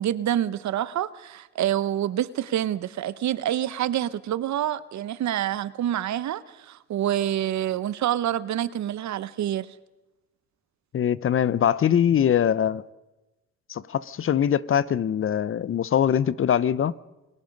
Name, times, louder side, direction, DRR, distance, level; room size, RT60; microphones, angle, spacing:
voice 1, 0.0-9.7, right 11 dB, 65° right, 0.9 m, -27 dB
voice 2, 10.9-12.8 13.7-16.9, left 9 dB, 45° left, 0.6 m, -22 dB
28.0 x 18.0 x 5.3 m
cardioid pair, 90°, 30 cm